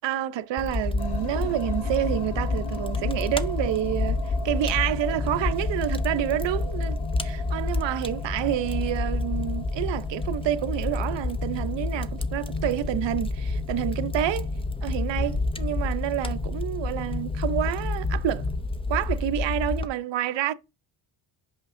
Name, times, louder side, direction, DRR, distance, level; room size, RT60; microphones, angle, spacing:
voice 1, 0.0-14.5 14.8-18.4 18.9-20.5, right 12 dB, 65° right, 0.6 m, -28 dB
Fire, 0.6-19.9, left 3 dB, 15° left, 0.4 m, -29 dB
sound 1, 1.0-18.6, left 4 dB, 55° left, 1.0 m, -39 dB
8.1 x 5.8 x 2.6 m
wide cardioid pair, 145°, 47 cm